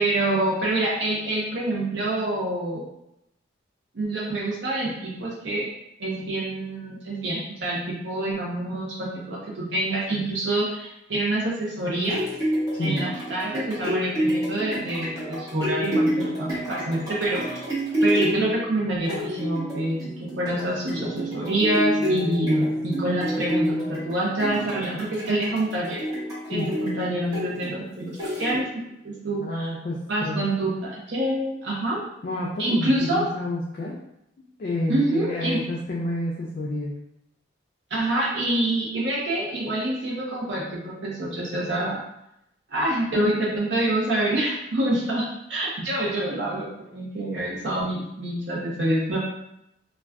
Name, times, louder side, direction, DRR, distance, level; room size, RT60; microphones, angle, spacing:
voice 1, 0.0-2.9 3.9-5.7 6.0-12.2 12.8-17.6 18.0-26.0 26.5-29.7 30.1-32.0 32.6-33.2 34.9-35.6 37.9-42.0 42.7-49.2, right 1 dB, 65° right, -5 dB, 0.6 m, -26 dB
sound 1, 11.8-28.9 29.4-29.5, equal, 20° right, 0.8 m, -28 dB
voice 2, 12.7-13.0 22.0-22.5 26.5-26.7 29.4-30.4 32.2-34.0 34.6-36.9, left 1 dB, 45° left, -3 dB, 0.3 m, -29 dB
2.3 x 2.2 x 3.4 m, 0.83 s
head